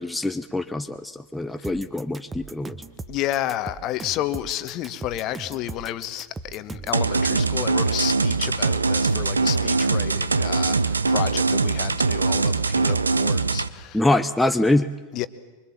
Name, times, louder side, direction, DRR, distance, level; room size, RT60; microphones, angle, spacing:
voice 1, 0.0-2.7 13.9-14.9, left 2 dB, 5° left, 0.7 m, -24 dB
sound 1, 1.6-7.0, right 3 dB, 15° right, 1.2 m, -38 dB
voice 2, 3.1-14.0 15.1-15.3, left 13 dB, 35° left, 1.2 m, -31 dB
sound 2, 6.9-13.7, right 4 dB, 75° right, 0.8 m, -22 dB
24.5 x 24.5 x 7.3 m
figure-of-eight pair, 90°, 0 cm